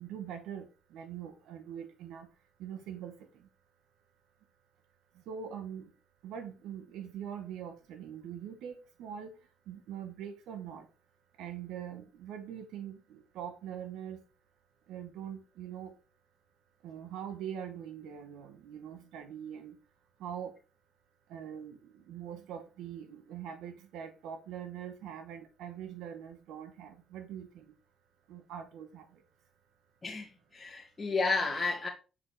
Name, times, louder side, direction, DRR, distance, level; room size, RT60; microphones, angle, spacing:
voice 1, 0.0-2.3 2.6-3.1 5.3-5.9 6.2-9.3 9.7-10.9 11.4-14.2 14.9-15.9 16.8-19.8 20.2-20.5 21.3-27.6 28.3-29.0, right 9 dB, 90° right, 1.0 m, -43 dB
voice 2, 30.5-31.9, left 3 dB, 25° left, 1.3 m, -31 dB
6.1 x 4.8 x 3.2 m
cardioid pair, 90°, 0 cm